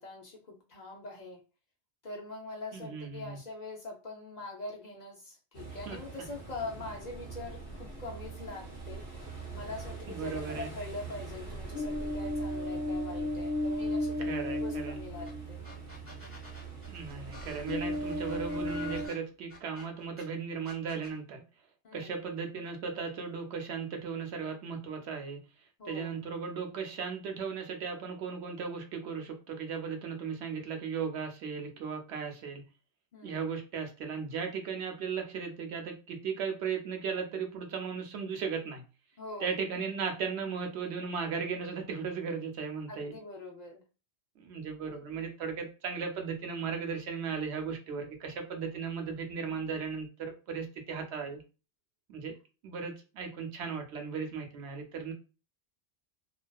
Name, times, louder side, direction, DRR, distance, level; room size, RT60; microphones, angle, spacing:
voice 1, 0.0-1.4 2.0-15.6 21.8-22.2 25.8-26.1 33.1-33.5 39.2-39.6 42.9-43.8 44.8-45.0, left 2 dB, 50° left, 0 dB, 0.5 m, -43 dB
voice 2, 2.7-3.4 5.9-6.0 10.1-10.7 14.3-15.0 16.9-21.4 21.9-25.4 25.9-32.6 33.2-38.8 39.4-43.1 44.4-51.4 52.1-52.3 52.6-55.1, right 6 dB, 80° right, 4 dB, 0.9 m, -36 dB
Ocean, 5.6-19.1, equal, 35° right, 0.7 m, -37 dB
sound 1, 15.3-15.4 15.6-20.2 20.7-21.2, left 4 dB, 15° right, 1.1 m, -49 dB
2.5 x 2.2 x 2.2 m, 0.33 s
omnidirectional pair, 1.1 m